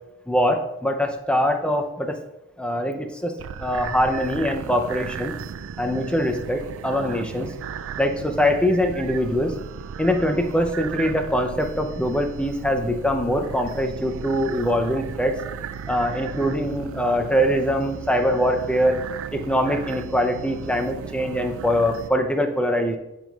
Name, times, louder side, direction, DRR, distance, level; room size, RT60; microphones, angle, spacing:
voice 1, 0.3-2.2 2.6-3.3 3.6-5.3 5.8-7.5 8.0-9.5 10.0-15.3 15.9-19.0 19.3-23.0, equal, 5° left, 5 dB, 0.5 m, -23 dB
sound 1, 3.4-22.1, right 7 dB, 60° right, 0.3 m, -36 dB
12.0 x 4.6 x 2.3 m, 0.95 s
head